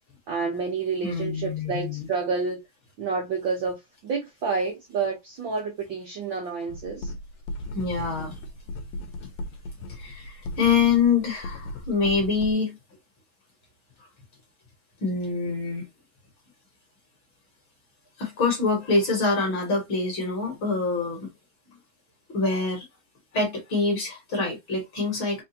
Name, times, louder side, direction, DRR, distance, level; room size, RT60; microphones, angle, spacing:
voice 1, 0.3-2.6 3.0-7.1, right 4 dB, 90° right, 1.0 m, -29 dB
voice 2, 1.0-2.1 7.7-8.4 9.9-12.8 15.0-15.9 18.2-21.3 22.3-22.9 23.3-25.4, left 4 dB, 50° left, 1.8 m, -25 dB
sound 1, 6.7-12.5, left 1 dB, 80° left, 1.7 m, -37 dB
4.8 x 2.6 x 2.8 m
omnidirectional pair, 3.6 m